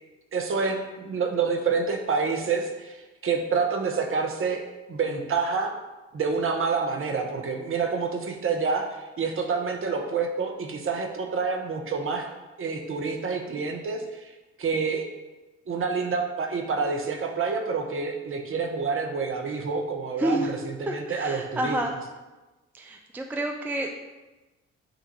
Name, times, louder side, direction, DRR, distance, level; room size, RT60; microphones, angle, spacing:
voice 1, 0.3-4.6 4.9-5.7 6.1-12.3 12.6-14.3 14.6-15.1 15.7-21.8, right 5 dB, 40° right, 3 dB, 0.8 m, -28 dB
voice 2, 20.2-20.5 20.9-21.9 22.7-23.9, right 1 dB, 5° right, 3 dB, 0.4 m, -29 dB
6.2 x 2.5 x 3.0 m, 1.1 s
hypercardioid pair, 45°, 34 cm